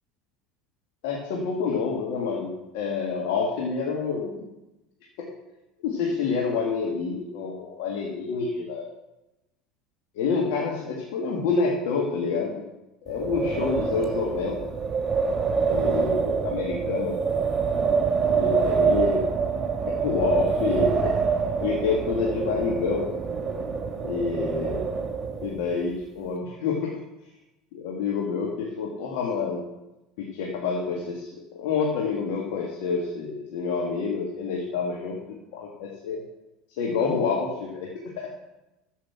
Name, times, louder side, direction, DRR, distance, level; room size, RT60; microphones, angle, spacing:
voice 1, 1.0-4.4 5.2-5.3 5.8-8.9 10.1-12.5 13.0-14.7 15.7-17.2 18.3-19.3 19.9-21.2 21.6-23.1 24.0-24.9 25.4-27.0 27.7-29.6 30.2-35.2 35.5-36.2 36.8-38.3, left 5 dB, 70° left, -1 dB, 2.0 m, -28 dB
Wind, 13.1-25.7, right 5 dB, 25° right, 2.6 m, -26 dB
13.5 x 5.8 x 6.1 m, 0.96 s
hypercardioid pair, 75°, 0 cm